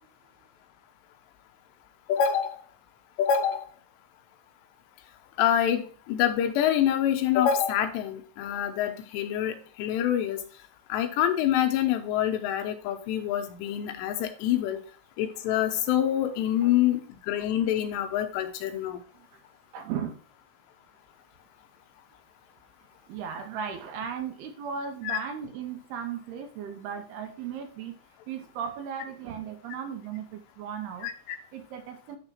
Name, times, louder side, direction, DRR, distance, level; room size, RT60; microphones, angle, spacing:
voice 1, 2.1-2.5 3.2-3.6 5.4-5.8 6.1-10.4 10.9-14.8 15.2-19.0 25.0-25.2 31.0-31.4, left 10 dB, 90° left, 7 dB, 3.1 m, -26 dB
voice 2, 19.7-20.2 23.1-28.0 28.3-31.1 31.5-32.2, right 7 dB, 80° right, 6 dB, 2.7 m, -36 dB
10.5 x 3.6 x 4.4 m, 0.40 s
omnidirectional pair, 4.9 m